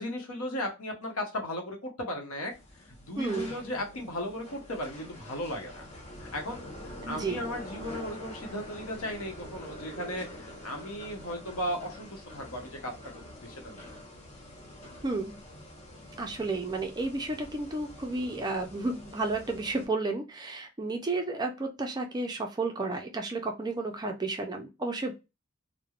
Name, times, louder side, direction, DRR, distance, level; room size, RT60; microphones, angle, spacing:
voice 1, 0.0-2.5 3.0-5.8 6.2-13.9, left 1 dB, 70° left, 2 dB, 0.9 m, -36 dB
sound 1, 2.5-19.8, left 1 dB, 30° left, 0.7 m, -46 dB
voice 2, 3.2-3.5 7.0-7.4 15.0-15.4 16.2-25.1, right 3 dB, 20° right, 4 dB, 0.4 m, -32 dB
3.1 x 2.1 x 2.3 m, 0.26 s
head